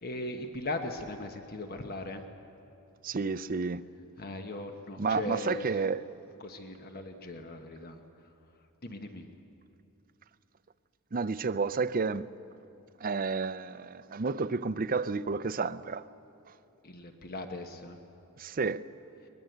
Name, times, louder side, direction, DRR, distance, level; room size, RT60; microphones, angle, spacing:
voice 1, 0.0-2.2 4.2-5.8 6.4-8.0 8.8-9.3 16.8-18.0, left 2 dB, 45° left, 1.2 m, -38 dB
voice 2, 3.0-3.8 5.0-6.0 11.1-12.3 13.0-16.0 18.4-18.8, right 4 dB, 40° right, 0.5 m, -31 dB
22.0 x 20.0 x 8.0 m
head